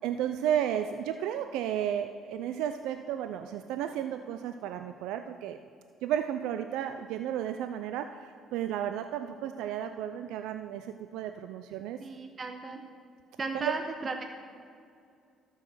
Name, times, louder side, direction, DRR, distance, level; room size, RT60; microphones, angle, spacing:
voice 1, 0.0-5.6 6.0-12.0 13.5-13.7, right 10 dB, 80° right, 8 dB, 0.4 m, -33 dB
voice 2, 12.0-12.8 13.4-14.2, right 3 dB, 40° right, 5 dB, 0.9 m, -35 dB
12.0 x 6.4 x 6.6 m, 2.4 s
supercardioid pair, 65°, 0 cm